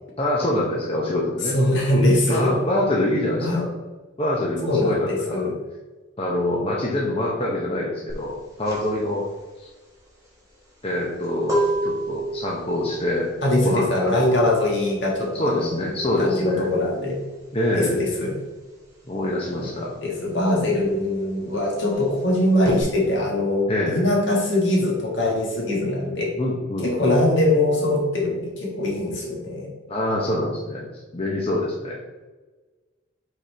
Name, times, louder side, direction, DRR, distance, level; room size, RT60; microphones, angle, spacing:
voice 1, 0.2-1.6 2.3-3.7 4.2-5.4 6.2-9.3 10.8-13.3 13.6-14.4 15.3-16.7 17.5-18.0 19.1-19.9 23.7-24.0 26.4-27.2 29.9-30.9 31.1-32.0, left 1 dB, 30° left, -3 dB, 0.8 m, -25 dB
voice 2, 1.5-2.5 3.4-3.6 4.6-5.5 13.4-15.7 16.2-17.2 17.7-18.3 19.6-19.7 20.0-26.3 26.8-29.7, left 1 dB, 65° left, -3 dB, 1.8 m, -22 dB
sound 1, 8.1-18.3 18.6-22.8, right 1 dB, 15° right, 1.6 m, -31 dB
5.2 x 4.2 x 4.3 m, 1.2 s
head